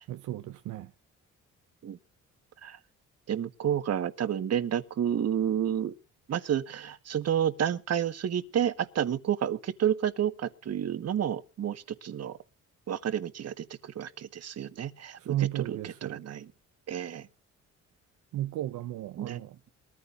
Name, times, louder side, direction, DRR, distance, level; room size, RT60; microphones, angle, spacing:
voice 1, 0.1-0.9 15.2-16.2 18.3-19.6, right 13 dB, 80° right, 0.9 m, -34 dB
voice 2, 3.3-5.9 6.3-12.4 12.9-16.5 16.9-17.3 19.1-19.4, right 9 dB, 55° right, 1.6 m, -30 dB
22.0 x 14.5 x 2.6 m
cardioid pair, 90°, 30 cm